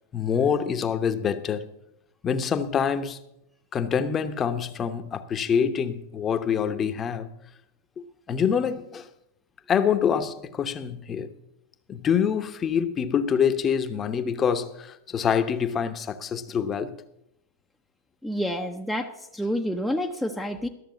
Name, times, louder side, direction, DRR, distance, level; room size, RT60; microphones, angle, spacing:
voice 1, 0.1-1.7 2.2-3.2 3.7-7.3 8.0-9.1 9.7-11.3 11.9-17.0, left 7 dB, 25° left, 0.9 m, -26 dB
voice 2, 18.2-20.7, equal, ahead, 0.7 m, -29 dB
13.0 x 6.6 x 7.9 m
hypercardioid pair, 105°, 0 cm